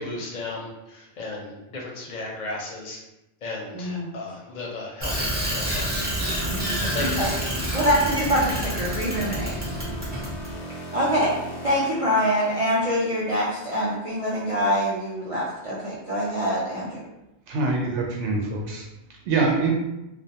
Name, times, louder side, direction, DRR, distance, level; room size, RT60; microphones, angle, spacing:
voice 1, 0.0-3.0 3.4-6.1 6.8-7.3, left 2 dB, 50° left, -2 dB, 0.6 m, -35 dB
voice 2, 3.7-4.1 6.5-7.3 7.7-9.5 10.9-11.3 11.6-16.9, equal, 55° right, -7 dB, 0.3 m, -25 dB
Bicycle, 5.0-10.5, right 1 dB, 10° right, 0.7 m, -28 dB
sound 1, 6.2-12.7, equal, 90° left, 0.9 m, -38 dB
voice 3, 17.5-19.7, right 3 dB, 85° right, 0 dB, 0.9 m, -25 dB
2.3 x 2.2 x 2.8 m, 0.93 s
omnidirectional pair, 1.1 m